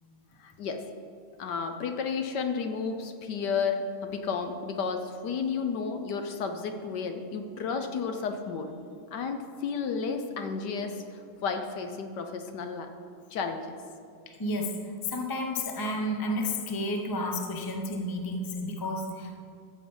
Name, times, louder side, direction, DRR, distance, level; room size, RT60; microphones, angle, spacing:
voice 1, 0.4-0.9 1.4-8.7 9.1-12.9 13.3-13.8, left 5 dB, 65° left, 6 dB, 1.3 m, -32 dB
voice 2, 14.4-14.7 15.0-19.4, left 1 dB, 25° left, 3 dB, 0.5 m, -31 dB
14.0 x 7.5 x 5.4 m, 2.4 s
omnidirectional pair, 2.2 m